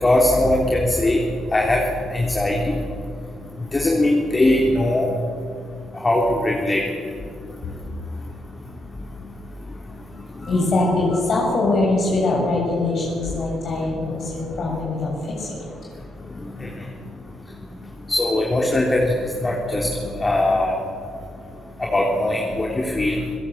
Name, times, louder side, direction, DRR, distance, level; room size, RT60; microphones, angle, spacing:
voice 1, 0.0-1.2 1.5-1.8 2.1-2.6 3.7-5.0 6.0-6.8 10.4-10.5 16.4-16.5 18.1-19.9 20.2-20.8 21.8-23.1, left 1 dB, 25° left, -1 dB, 3.8 m, -20 dB
voice 2, 10.5-15.6, left 2 dB, 60° left, -3 dB, 7.2 m, -22 dB
30.0 x 17.5 x 8.3 m, 2.3 s
cardioid pair, 90°, 0 cm